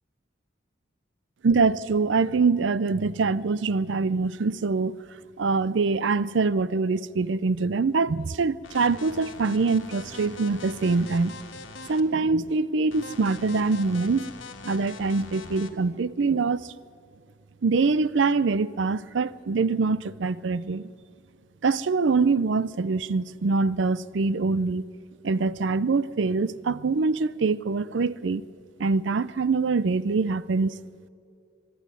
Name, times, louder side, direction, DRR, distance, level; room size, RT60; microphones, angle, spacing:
voice 1, 1.4-4.9 5.4-11.4 11.9-14.3 14.6-16.7 17.6-20.9 21.6-24.8 25.2-28.4 28.8-30.8, right 4 dB, 70° right, 0.5 m, -24 dB
sound 1, 8.6-12.0 12.9-15.7, left 3 dB, 80° left, 1.6 m, -42 dB
24.0 x 11.5 x 9.7 m
head